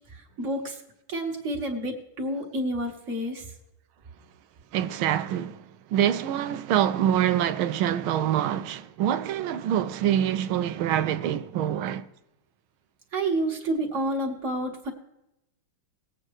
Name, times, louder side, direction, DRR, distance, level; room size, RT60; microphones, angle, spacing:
voice 1, 0.4-0.8 1.1-3.4 13.1-14.9, right 1 dB, 35° right, 1.9 m, -29 dB
voice 2, 4.7-5.6 5.9-12.0, right 10 dB, 80° right, 1.4 m, -25 dB
20.0 x 8.7 x 3.2 m
omnidirectional pair, 2.3 m